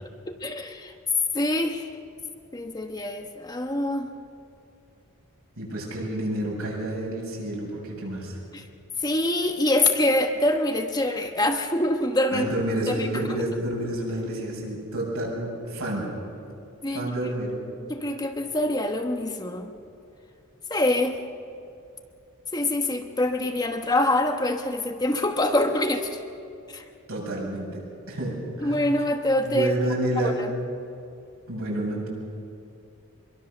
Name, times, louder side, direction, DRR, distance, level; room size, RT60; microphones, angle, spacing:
voice 1, 0.0-0.9 1.3-1.9 2.5-4.1 8.5-8.6 9.0-12.5 12.9-13.5 16.8-17.1 17.8-19.7 20.7-21.2 22.5-26.2 26.7-26.8 28.6-29.8 30.2-30.5, left 1 dB, 20° left, 4 dB, 1.1 m, -25 dB
voice 2, 5.6-8.4 12.3-16.1 16.9-17.5 27.1-27.8 28.1-28.8 29.4-30.4 31.5-32.1, right 1 dB, 75° right, -2 dB, 7.8 m, -29 dB
25.0 x 23.0 x 6.8 m, 2.6 s
head